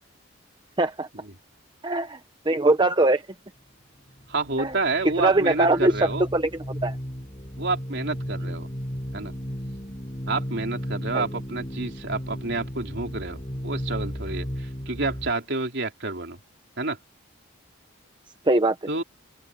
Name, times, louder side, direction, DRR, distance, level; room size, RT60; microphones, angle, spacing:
voice 1, 0.8-1.1 1.8-2.2 2.5-3.2 4.6-4.7 5.2-5.9 6.3-7.0 11.1-11.2 18.5-18.8, right 2 dB, 20° right, 0.8 m, -21 dB
sound 1, 4.1-15.3, equal, 25° left, 7.5 m, -34 dB
voice 2, 4.3-6.2 7.6-8.7 9.1-9.3 10.3-16.4 16.8-17.0 18.9-19.0, right 3 dB, 55° right, 3.8 m, -29 dB
open air
head